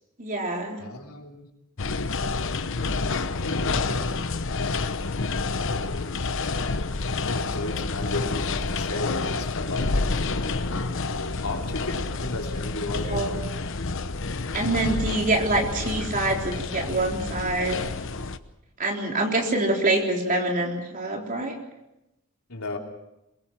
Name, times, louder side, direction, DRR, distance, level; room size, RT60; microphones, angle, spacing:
voice 1, 0.2-0.8 13.1-13.3 14.5-17.8 18.8-21.6, right 2 dB, 40° right, 1 dB, 3.9 m, -25 dB
voice 2, 0.8-1.5 3.3-4.1 4.6-5.0 7.2-13.5 22.5-22.8, left 2 dB, 85° left, 1 dB, 3.5 m, -35 dB
sound 1, 1.8-18.4, left 3 dB, 65° left, 1.0 m, -29 dB
23.0 x 22.0 x 6.1 m, 0.91 s
head